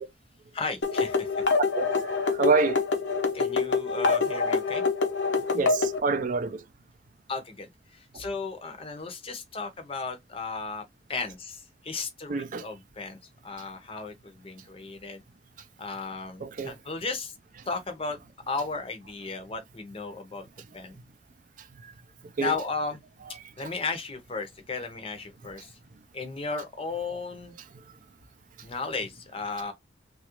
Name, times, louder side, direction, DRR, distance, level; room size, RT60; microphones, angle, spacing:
voice 1, 0.5-1.5 3.3-4.8 7.3-10.8 11.1-15.2 15.8-17.3 17.7-18.2 18.5-20.5 20.7-21.0 22.4-23.0 23.3-25.8 26.1-27.5 28.6-29.7, left 4 dB, 30° left, 0.6 m, -35 dB
sound 1, 0.8-6.0, left 4 dB, 80° left, 0.7 m, -26 dB
voice 2, 2.4-2.8 5.5-6.6 12.3-12.6 16.4-16.7 22.4-22.5, right 4 dB, 45° right, 0.4 m, -26 dB
2.9 x 2.3 x 2.9 m
head